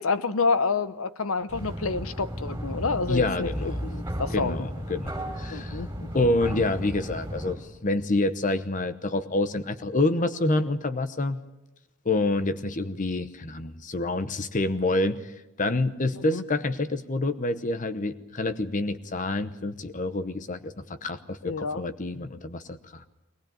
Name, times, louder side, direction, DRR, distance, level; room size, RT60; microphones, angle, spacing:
voice 1, 0.0-4.6 5.5-6.3 16.2-16.4 21.4-21.8, left 4 dB, 75° left, 13 dB, 0.9 m, -28 dB
sound 1, 1.5-7.5, equal, 10° right, 5.7 m, -34 dB
voice 2, 3.1-3.8 4.3-5.8 6.1-11.4 12.0-23.0, left 2 dB, 35° left, 10 dB, 0.9 m, -27 dB
21.5 x 19.0 x 9.0 m, 0.99 s
head